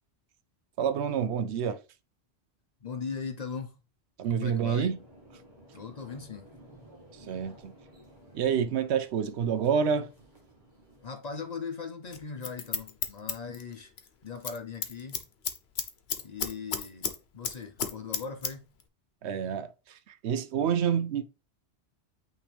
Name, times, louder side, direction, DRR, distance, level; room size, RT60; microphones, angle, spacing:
voice 1, 0.8-1.8 4.2-5.0 7.3-7.7 8.3-10.1 19.2-19.7 20.2-21.2, right 7 dB, 75° right, 0.9 m, -27 dB
voice 2, 2.8-3.8 4.4-4.9 5.7-6.5 11.0-13.9 14.2-15.3 16.2-18.7, left 5 dB, 45° left, 0.7 m, -39 dB
sound 1, 4.8-11.0, right 1 dB, 45° right, 1.6 m, -54 dB
Scissors, 12.1-14.1 14.4-14.6 14.8-17.2 17.4-18.5 18.8-18.9, left 7 dB, 65° left, 1.1 m, -32 dB
8.6 x 3.2 x 3.4 m
omnidirectional pair, 1.2 m